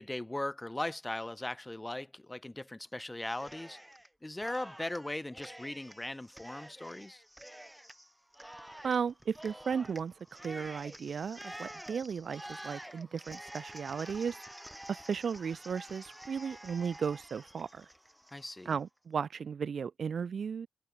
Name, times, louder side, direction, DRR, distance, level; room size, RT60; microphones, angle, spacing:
voice 1, 0.0-3.8 4.2-7.2 18.3-18.8, left 1 dB, 10° left, 3.3 m, -39 dB
Cheering, 3.2-4.1 4.4-18.8, right 1 dB, 5° right, 3.7 m, -49 dB
voice 2, 8.8-14.4 14.9-17.9 18.7-20.7, right 6 dB, 55° right, 2.3 m, -35 dB
wide cardioid pair, 120°, 0 cm